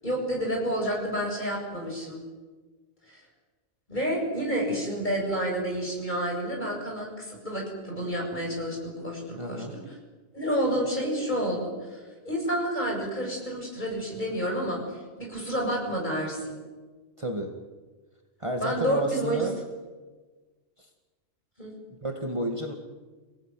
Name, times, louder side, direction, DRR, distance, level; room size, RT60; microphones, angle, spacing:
voice 1, 0.0-2.2 3.1-3.2 3.9-9.8 10.3-16.6 18.6-19.5 21.6-21.7, equal, 40° left, 0 dB, 7.9 m, -29 dB
voice 2, 9.4-9.7 17.2-17.5 18.4-19.6 22.0-22.7, right 1 dB, 25° right, 3 dB, 2.2 m, -31 dB
27.0 x 18.0 x 9.3 m, 1.3 s
omnidirectional pair, 1.2 m